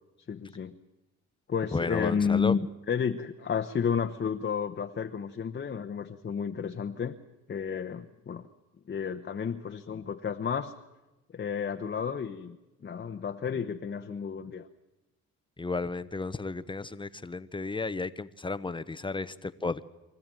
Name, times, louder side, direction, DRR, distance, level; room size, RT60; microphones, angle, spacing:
voice 1, 0.3-0.7 1.5-7.2 7.5-8.5 8.9-10.7 11.3-14.7, left 6 dB, 35° left, 5 dB, 1.0 m, -31 dB
voice 2, 1.7-2.5 15.6-19.8, left 3 dB, 15° left, 13 dB, 0.9 m, -33 dB
24.5 x 15.0 x 9.1 m, 1.0 s
cardioid pair, 90°, 30 cm